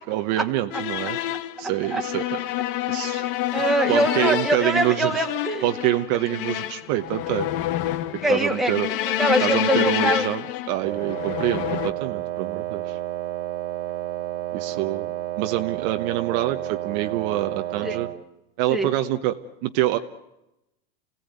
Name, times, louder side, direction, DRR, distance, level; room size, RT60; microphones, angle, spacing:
voice 1, 0.1-1.2 1.6-3.2 3.9-5.2 5.6-7.5 8.3-8.9 9.4-13.0 14.5-18.1 18.6-19.4 19.6-20.0, right 15 dB, 40° right, 7 dB, 1.1 m, -26 dB
sound 1, 0.7-11.9, left 13 dB, 50° left, 1.4 m, -28 dB
voice 2, 2.9-5.6 8.2-10.2 17.8-18.0 18.7-18.9, right 1 dB, ahead, 3 dB, 1.9 m, -24 dB
Wind instrument woodwind instrument, 10.8-18.2, right 13 dB, 85° right, 2.8 m, -31 dB
29.0 x 17.5 x 9.4 m, 0.93 s
supercardioid pair, 155°, 33 cm